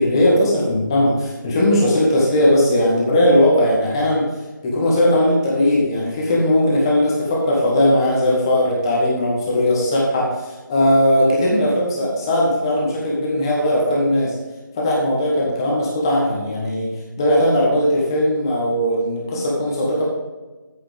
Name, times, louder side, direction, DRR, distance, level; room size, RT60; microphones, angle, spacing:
voice 1, 0.0-4.2 4.6-14.3 14.8-16.9 17.2-20.0, left 1 dB, 15° left, -4 dB, 1.5 m, -18 dB
11.5 x 8.0 x 3.6 m, 1.2 s
figure-of-eight pair, 165°, 11 cm